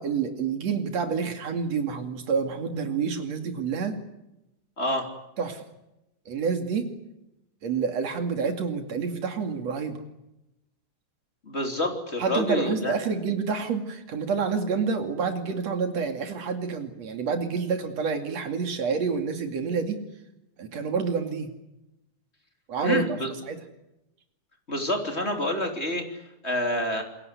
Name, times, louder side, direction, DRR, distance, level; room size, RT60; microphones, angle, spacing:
voice 1, 0.0-4.0 5.4-5.6 6.3-6.9 7.6-10.0 12.2-20.0 20.6-21.5 22.7-23.2 23.5-23.6, right 5 dB, 55° right, 6 dB, 3.5 m, -28 dB
voice 2, 4.8-5.1 11.4-12.9 22.8-23.3 24.7-26.2 26.4-27.0, left 1 dB, 20° left, 4 dB, 3.3 m, -28 dB
28.0 x 21.5 x 8.2 m, 0.91 s
omnidirectional pair, 3.8 m